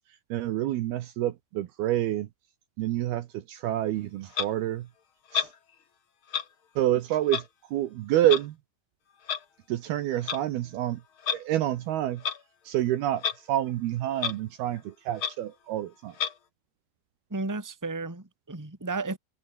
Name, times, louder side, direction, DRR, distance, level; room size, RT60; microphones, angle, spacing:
voice 1, 0.3-2.3 2.8-4.9 5.3-5.5 6.8-7.4 7.7-8.6 9.7-11.0 11.3-12.2 12.7-16.2, right 13 dB, 70° right, 2.7 m, -28 dB
Clock, 4.3-4.5 5.3-5.5 6.3-6.4 7.3-7.4 8.3-8.4 9.3-9.4 10.1-10.4 11.2-11.4 12.2-12.4 13.2-13.4 13.7-13.8 14.2-14.3 14.8-14.9 15.1-15.3 16.1-16.3, left 7 dB, 50° left, 1.6 m, -29 dB
voice 2, 17.3-19.2, right 3 dB, 5° right, 2.2 m, -33 dB
omnidirectional pair, 5.1 m